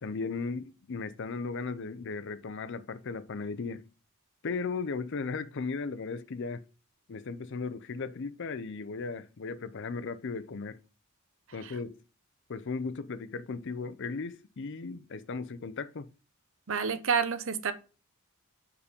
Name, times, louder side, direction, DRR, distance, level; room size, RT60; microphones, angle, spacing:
voice 1, 0.0-3.8 4.4-6.6 7.1-10.8 11.5-12.0 12.5-16.1, left 4 dB, 55° left, 0.5 m, -36 dB
voice 2, 16.7-17.7, right 6 dB, 60° right, 0.8 m, -29 dB
5.0 x 4.9 x 5.1 m
head